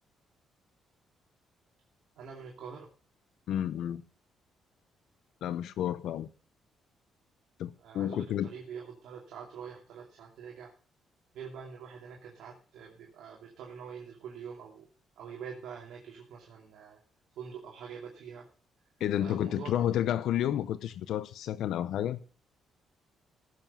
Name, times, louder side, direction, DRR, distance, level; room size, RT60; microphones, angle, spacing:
voice 1, 2.2-2.9 7.8-10.7 11.3-14.9 15.2-17.0 17.4-18.5 19.2-19.7, right 6 dB, 80° right, 2.4 m, -45 dB
voice 2, 3.5-4.0 5.4-6.3 7.6-8.5 19.0-22.2, left 11 dB, 80° left, 0.6 m, -31 dB
15.0 x 7.2 x 5.4 m
cardioid pair, 90°, 0 cm